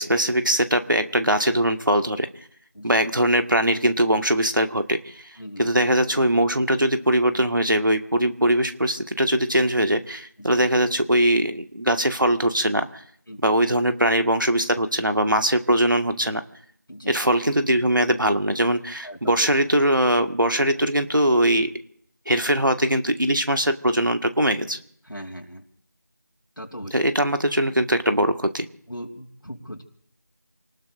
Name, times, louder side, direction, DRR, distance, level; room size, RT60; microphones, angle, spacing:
voice 1, 0.0-2.3 2.8-5.3 5.6-13.0 13.4-16.4 17.1-21.7 22.3-24.8 26.9-28.7, right 1 dB, 75° right, 7 dB, 1.7 m, -21 dB
voice 2, 5.4-5.9 10.4-10.6 13.3-13.6 16.9-17.2 19.0-19.5 25.0-25.6 26.6-27.1 28.9-29.8, equal, 90° left, 1 dB, 3.0 m, -38 dB
29.0 x 19.5 x 2.6 m, 0.64 s
figure-of-eight pair, 175°, 11 cm